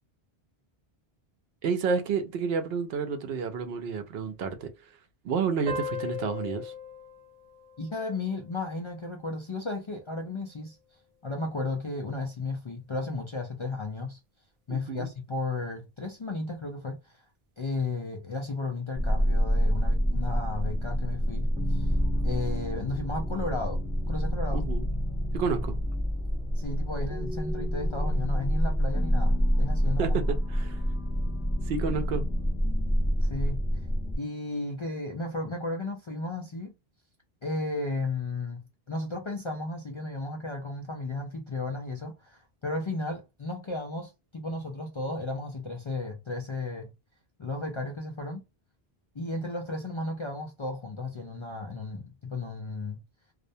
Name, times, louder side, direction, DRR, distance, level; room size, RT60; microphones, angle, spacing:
voice 1, 1.6-4.7 5.2-6.7 14.7-15.1 24.5-24.9 25.3-25.8 30.0-30.2 30.5-30.8 31.7-32.2, right 5 dB, 75° right, 0.8 m, -30 dB
sound 1, 5.7-8.8, left 3 dB, 50° right, 0.4 m, -38 dB
voice 2, 7.8-10.8 11.2-14.2 14.7-17.2 17.6-21.9 22.2-23.8 24.1-24.7 26.6-30.2 33.2-33.6 34.2-36.7 37.4-38.6 38.9-46.9 47.4-48.4 49.1-53.0, left 2 dB, 45° left, 0.4 m, -34 dB
sound 2, 19.0-34.2, equal, 5° right, 0.7 m, -27 dB
2.4 x 2.1 x 2.6 m
omnidirectional pair, 1.0 m